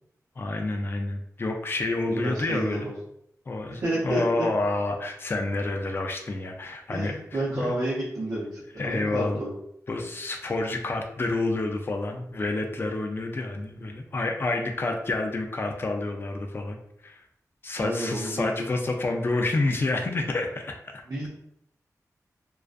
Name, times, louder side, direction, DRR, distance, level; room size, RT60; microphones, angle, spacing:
voice 1, 0.4-2.9 3.5-7.2 7.5-7.8 8.8-9.4 9.9-16.8 17.0-17.2 17.6-21.0, left 2 dB, 35° left, 3 dB, 0.3 m, -29 dB
voice 2, 2.1-2.9 3.7-4.5 6.9-9.5 17.8-18.7 21.1-21.3, right 1 dB, 65° right, -9 dB, 0.8 m, -30 dB
2.3 x 2.3 x 2.4 m, 0.76 s
wide cardioid pair, 105°, 6 cm